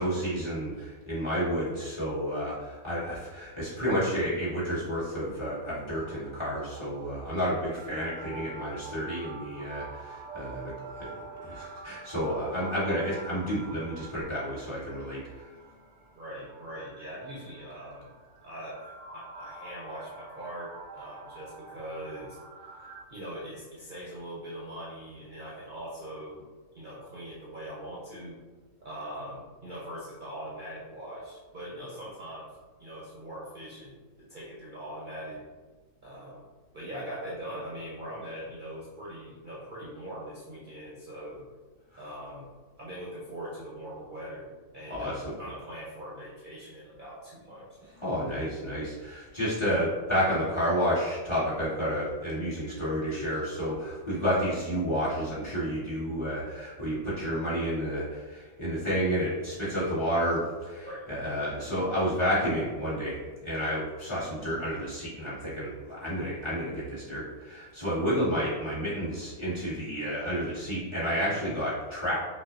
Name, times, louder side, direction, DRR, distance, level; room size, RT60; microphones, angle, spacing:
voice 1, 0.0-11.1 11.4-15.2 44.9-45.3 48.0-72.2, equal, 20° left, -9 dB, 1.5 m, -30 dB
sound 1, 5.1-23.0, right 3 dB, 70° right, 1.0 m, -47 dB
voice 2, 16.1-18.1 18.4-22.4 22.7-26.5 26.7-28.4 28.8-32.5 32.8-35.4 36.0-36.4 36.7-41.5 42.0-42.5 42.8-48.1 60.8-61.0, right 1 dB, 40° right, -7 dB, 0.8 m, -41 dB
5.5 x 2.4 x 2.5 m, 1.3 s
omnidirectional pair, 1.5 m